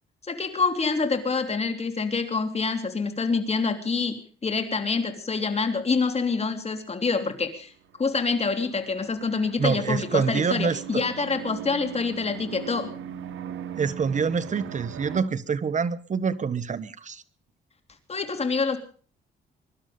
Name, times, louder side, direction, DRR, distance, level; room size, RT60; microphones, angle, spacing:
voice 1, 0.3-7.7 8.0-12.9 18.1-18.8, left 4 dB, 30° left, 7 dB, 3.3 m, -26 dB
sound 1, 7.9-15.2, right 9 dB, 75° right, 1.5 m, -39 dB
voice 2, 9.6-11.1 13.7-17.2, right 5 dB, 40° right, 15 dB, 1.2 m, -26 dB
23.0 x 12.0 x 5.2 m, 0.43 s
cardioid pair, 90°, 20 cm